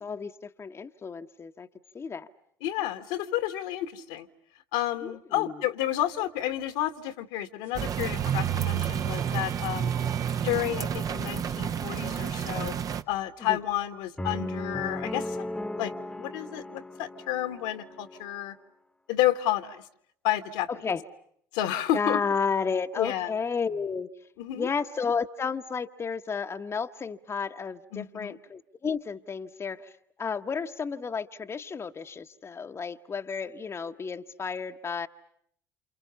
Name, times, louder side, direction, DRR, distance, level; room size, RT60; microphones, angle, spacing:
voice 1, 0.0-0.3 0.6-1.7 1.9-2.3 5.0-5.5 10.0-10.1 13.5-13.6 20.8-21.0 21.9-24.1 24.6-29.8 30.2-35.1, left 5 dB, 30° left, 1.1 m, -32 dB
voice 2, 2.6-4.3 4.7-9.9 10.4-12.7 13.1-15.4 15.7-18.6 19.1-19.8 20.2-20.8 21.5-22.2 23.0-23.3 24.4-24.7 27.9-28.4, left 13 dB, 70° left, 1.6 m, -30 dB
sound 1, 7.6-10.5, right 10 dB, 65° right, 2.9 m, -46 dB
sound 2, 7.7-13.0, right 8 dB, 40° right, 1.1 m, -30 dB
sound 3, 14.2-18.3, left 1 dB, 10° left, 1.3 m, -36 dB
28.5 x 28.0 x 7.0 m
hypercardioid pair, 65°, 9 cm